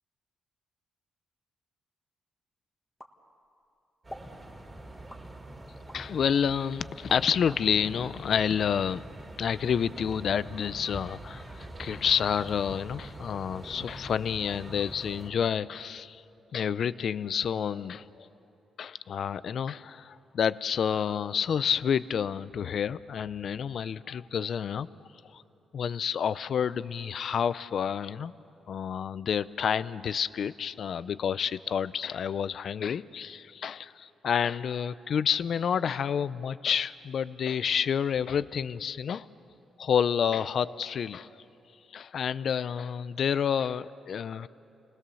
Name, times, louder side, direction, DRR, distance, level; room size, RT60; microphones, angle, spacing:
sound 1, 3.0-3.7 4.1-4.4 5.1-6.1 6.6-7.7, left 1 dB, 5° left, 1.6 m, -48 dB
sound 2, 4.0-15.3, right 1 dB, 20° right, 3.1 m, -44 dB
voice 1, 5.9-9.0 9.4-16.2 16.5-18.3 18.8-24.9 25.3-25.4 25.7-28.3 28.7-39.3 39.8-41.3 41.9-44.5, left 7 dB, 50° left, 16 dB, 0.5 m, -29 dB
29.5 x 19.5 x 7.0 m, 2.8 s
cardioid pair, 140°, 0 cm